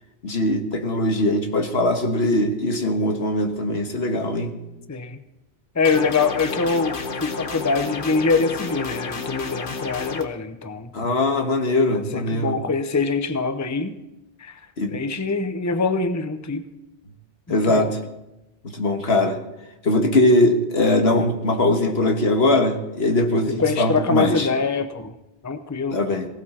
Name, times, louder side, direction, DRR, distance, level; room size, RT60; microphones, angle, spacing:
voice 1, 0.2-4.5 10.9-12.6 14.8-15.0 17.5-17.9 18.7-19.4 19.8-24.5 25.9-26.3, left 1 dB, 80° left, 5 dB, 1.7 m, -21 dB
voice 2, 4.9-5.2 5.8-10.9 11.9-14.0 14.4-14.6 14.9-16.6 17.5-17.9 23.5-25.1 25.4-26.0, left 4 dB, 20° left, 9 dB, 0.7 m, -24 dB
sound 1, 5.8-10.2, left 4 dB, 55° left, 1.2 m, -31 dB
18.0 x 16.5 x 4.3 m, 0.97 s
omnidirectional pair, 1.1 m